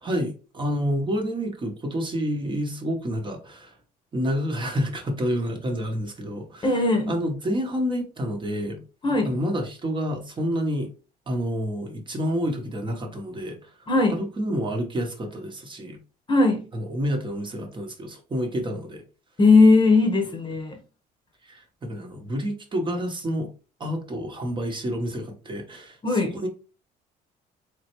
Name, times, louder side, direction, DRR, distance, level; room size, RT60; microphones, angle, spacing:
voice 1, 0.0-3.7 4.1-6.7 7.1-8.8 9.3-10.9 11.3-13.7 14.1-16.0 16.7-19.0 21.4-23.5 23.8-26.5, equal, 30° right, 1.0 m, -29 dB
voice 2, 6.6-7.1 9.0-9.3 13.9-14.2 16.3-16.6 19.4-20.8 26.0-26.3, left 3 dB, 30° left, 0.9 m, -18 dB
3.8 x 3.2 x 3.0 m
cardioid pair, 110°, 17 cm